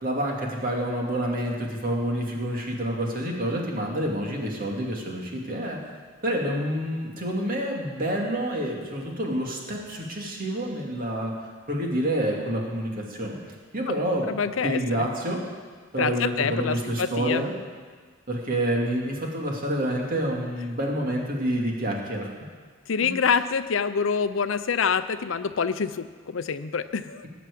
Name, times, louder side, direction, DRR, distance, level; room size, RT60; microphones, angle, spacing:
voice 1, 0.0-5.8 6.2-11.3 11.7-13.4 13.7-14.4 14.6-15.4 15.9-17.5 18.3-22.3 23.0-23.2, right 1 dB, 45° right, -1 dB, 2.4 m, -28 dB
voice 2, 14.3-15.1 16.0-17.4 22.9-27.3, left 6 dB, 75° left, 12 dB, 0.6 m, -26 dB
18.5 x 6.1 x 8.5 m, 1.5 s
head